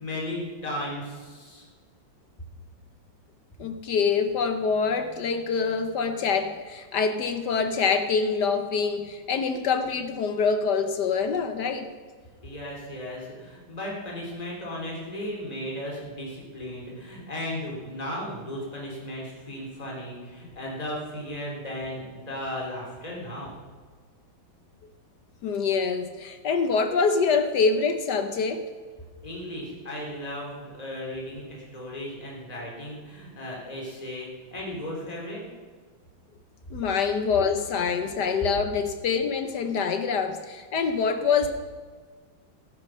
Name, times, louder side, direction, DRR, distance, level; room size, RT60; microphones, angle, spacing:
voice 1, 0.0-1.7 12.4-23.5 29.2-35.4, left 1 dB, 20° left, -3 dB, 3.3 m, -35 dB
voice 2, 3.6-11.9 25.4-28.7 36.7-41.5, left 5 dB, 65° left, 8 dB, 1.2 m, -25 dB
15.0 x 8.7 x 6.2 m, 1.5 s
omnidirectional pair, 2.3 m